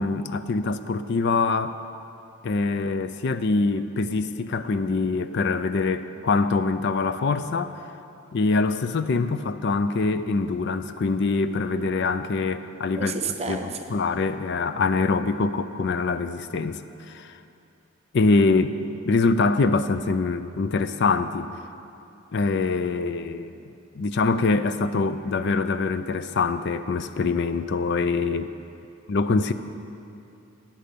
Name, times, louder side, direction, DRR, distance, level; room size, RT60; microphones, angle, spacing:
voice 1, 0.0-1.8 2.4-7.8 8.3-13.1 13.5-13.6 13.9-16.8 17.1-17.3 18.1-18.8 19.1-21.5 22.3-23.6 24.0-28.5 29.1-29.5, left 3 dB, 55° left, 11 dB, 0.4 m, -24 dB
voice 2, 12.9-13.9, right 4 dB, 30° right, 5 dB, 0.8 m, -31 dB
13.5 x 8.9 x 6.8 m, 2.7 s
head